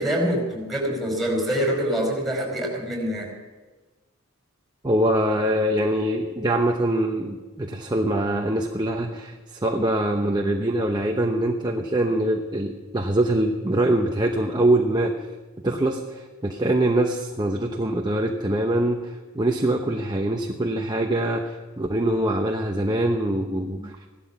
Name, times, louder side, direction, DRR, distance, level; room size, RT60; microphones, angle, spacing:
voice 1, 0.0-3.3, equal, ahead, -1 dB, 4.8 m, -25 dB
voice 2, 4.8-15.1 15.6-23.9, right 1 dB, 20° right, 2 dB, 0.9 m, -23 dB
17.0 x 12.5 x 5.9 m, 1.3 s
head